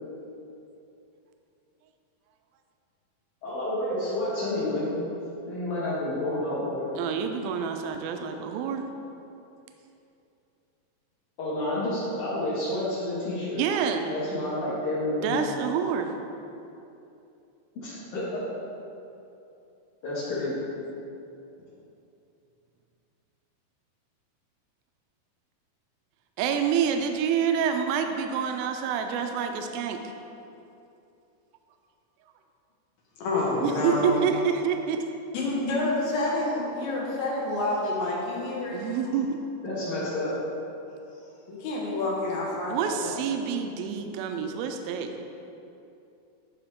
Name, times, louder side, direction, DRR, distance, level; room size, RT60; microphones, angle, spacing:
voice 1, 3.4-4.9 5.5-6.9 11.4-13.6 14.1-15.6 17.8-18.4 20.0-20.6 33.3-33.4 39.6-40.3, left 1 dB, 65° left, -12 dB, 3.0 m, -29 dB
voice 2, 7.0-8.9 13.6-14.1 15.2-16.1 26.4-30.0 33.6-35.0 38.7-39.4 42.7-45.1, right 7 dB, 85° right, 5 dB, 2.3 m, -27 dB
voice 3, 33.2-34.2 35.3-38.8 41.5-43.1, left 2 dB, 90° left, -4 dB, 3.1 m, -28 dB
11.0 x 5.2 x 3.6 m, 2.7 s
omnidirectional pair, 4.2 m